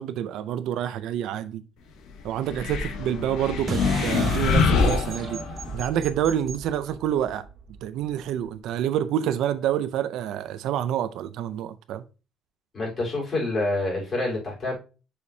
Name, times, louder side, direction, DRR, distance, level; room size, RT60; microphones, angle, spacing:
voice 1, 0.0-1.6 2.2-5.5 5.7-7.5 7.8-12.0, right 10 dB, 70° right, 0.5 m, -27 dB
sound 1, 2.5-5.8, left 4 dB, 80° left, 1.0 m, -24 dB
sound 2, 3.7-8.6, right 5 dB, 35° right, 0.7 m, -37 dB
voice 2, 12.7-14.7, left 2 dB, 30° left, 3.8 m, -27 dB
6.9 x 5.0 x 2.7 m
cardioid pair, 170°, 0 cm